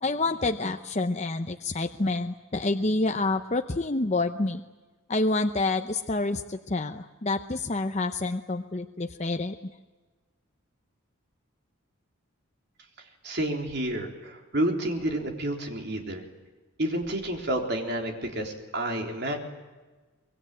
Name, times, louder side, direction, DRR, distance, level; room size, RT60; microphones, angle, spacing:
voice 1, 0.0-4.6 5.1-9.7, left 2 dB, 30° left, 6 dB, 0.7 m, -28 dB
voice 2, 13.2-16.2 16.8-19.4, right 1 dB, 50° right, 2 dB, 3.8 m, -30 dB
24.5 x 22.0 x 9.1 m, 1.3 s
head